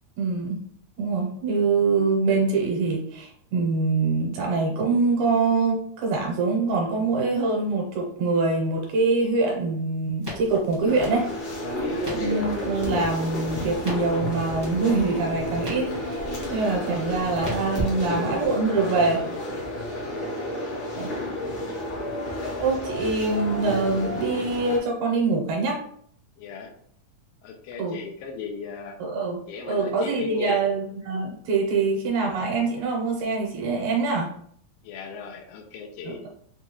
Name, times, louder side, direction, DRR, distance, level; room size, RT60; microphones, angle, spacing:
voice 1, 0.2-0.7 1.0-11.3 12.1-19.2 20.9-21.1 22.6-25.8 27.8-28.0 29.0-34.4 36.0-36.3, right 3 dB, 80° right, -1 dB, 2.1 m, -24 dB
Crackle, 10.2-18.5, right 1 dB, 20° right, 0.6 m, -39 dB
sound 1, 10.9-24.8, left 1 dB, 65° left, 1.2 m, -31 dB
voice 2, 26.4-26.7 27.4-29.0 29.5-30.6 34.8-36.2, left 5 dB, 85° left, 2 dB, 1.4 m, -37 dB
5.4 x 2.3 x 3.0 m, 0.65 s
omnidirectional pair, 3.5 m